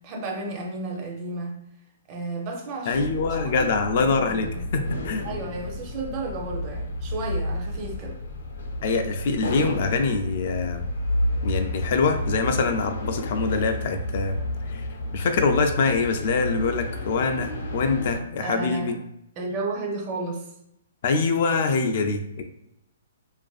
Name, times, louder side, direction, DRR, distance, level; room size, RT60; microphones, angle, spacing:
voice 1, 0.0-1.6 2.1-4.7 5.2-8.2 18.4-19.0 19.4-20.5, right 2 dB, 30° right, 1 dB, 0.6 m, -33 dB
sound 1, 2.9-18.2, left 1 dB, 85° left, 0.7 m, -31 dB
voice 2, 2.9-5.2 8.8-10.8 11.4-14.4 14.7-14.9 15.1-19.0 21.0-22.4, left 4 dB, 50° left, 5 dB, 0.3 m, -24 dB
2.5 x 2.5 x 2.3 m, 0.81 s
hypercardioid pair, 150°, 0 cm